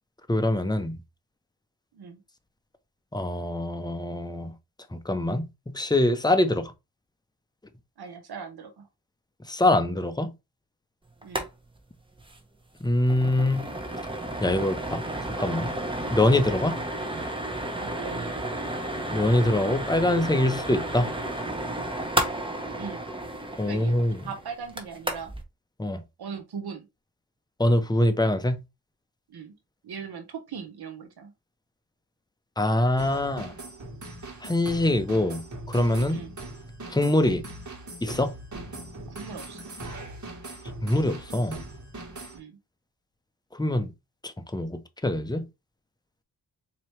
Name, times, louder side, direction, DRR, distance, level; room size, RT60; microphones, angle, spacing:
voice 1, 0.3-1.0 3.1-4.5 4.9-6.7 9.5-10.3 12.8-13.7 14.4-15.0 15.4-15.7 16.1-16.8 19.1-21.1 23.6-24.2 25.8-26.0 27.6-28.6 32.6-33.5 34.4-36.2 36.9-37.4 38.0-38.3 40.8-41.6 43.5-43.9 44.2-45.4, left 1 dB, 10° left, 0.6 m, -24 dB
voice 2, 8.0-8.9 11.2-11.5 17.8-18.4 22.8-23.0 23.6-24.0 24.2-25.3 26.2-26.9 29.3-29.6 29.8-31.3 36.1-36.4 39.1-39.7 42.3-42.6, right 6 dB, 70° right, 0.9 m, -39 dB
sound 1, 11.2-11.5 11.8-11.9 12.2-12.4 12.7-25.4, right 1 dB, 15° right, 1.0 m, -32 dB
sound 2, 33.0-42.4, right 2 dB, 45° right, 1.5 m, -40 dB
4.3 x 2.9 x 3.2 m
cardioid pair, 70°, 40 cm